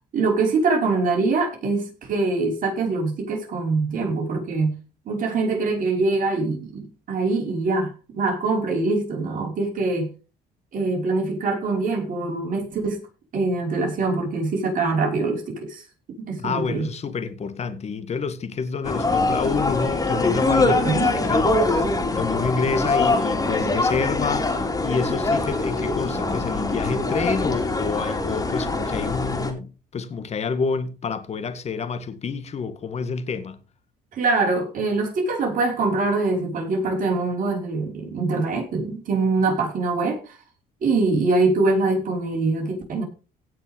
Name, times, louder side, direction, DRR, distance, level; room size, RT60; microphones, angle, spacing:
voice 1, 0.1-4.7 5.1-10.1 10.7-13.0 13.3-15.8 16.2-16.9 20.7-21.1 34.1-40.4 40.8-43.0, right 3 dB, 55° right, 5.8 m, -23 dB
voice 2, 16.4-21.8 22.1-24.5 24.8-33.6, left 5 dB, 40° left, 2.1 m, -28 dB
sound 1, 18.8-29.5, left 2 dB, 20° left, 3.8 m, -23 dB
17.5 x 6.1 x 5.4 m
cardioid pair, 110°, 17 cm